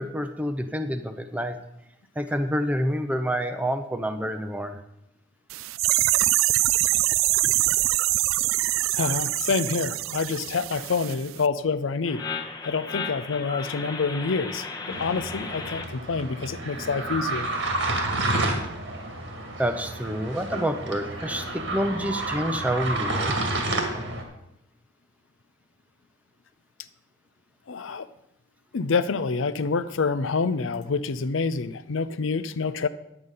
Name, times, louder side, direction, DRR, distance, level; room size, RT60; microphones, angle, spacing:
voice 1, 0.0-1.6 2.2-4.8 19.6-23.3, equal, 5° right, 8 dB, 0.6 m, -28 dB
sound 1, 5.5-11.1 11.4-11.5, right 17 dB, 85° right, 0.3 m, -24 dB
voice 2, 8.9-12.2 12.6-17.5 27.7-28.1 28.7-32.9, left 4 dB, 75° left, 13 dB, 0.5 m, -27 dB
sound 2, 12.0-15.8, left 4 dB, 20° left, 0.9 m, -35 dB
sound 3, 14.9-24.2, right 2 dB, 65° right, 2.0 m, -30 dB
10.5 x 8.1 x 5.4 m, 0.83 s
head